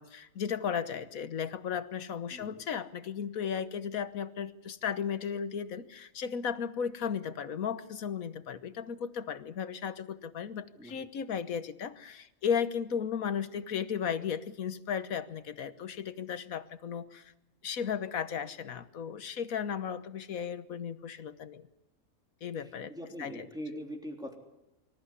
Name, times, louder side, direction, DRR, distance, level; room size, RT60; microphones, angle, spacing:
voice 1, 0.0-17.3 17.6-21.7 22.4-22.9 23.2-23.5, left 7 dB, 80° left, 12 dB, 1.5 m, -35 dB
voice 2, 22.6-24.3, equal, 5° right, 1 dB, 3.6 m, -42 dB
25.0 x 14.0 x 9.8 m, 0.95 s
omnidirectional pair, 1.5 m